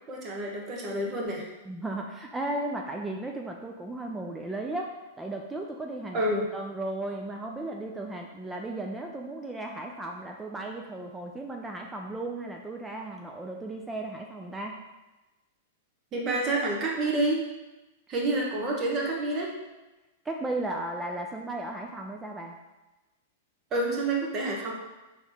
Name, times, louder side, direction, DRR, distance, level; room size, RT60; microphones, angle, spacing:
voice 1, 0.1-1.5 6.1-6.5 16.1-17.5 18.1-19.5 23.7-24.7, right 2 dB, 25° right, -1 dB, 1.0 m, -28 dB
voice 2, 1.7-14.8 20.3-22.6, right 2 dB, 10° right, 1 dB, 0.3 m, -35 dB
4.4 x 2.9 x 3.4 m, 1.1 s
hypercardioid pair, 145°, 0 cm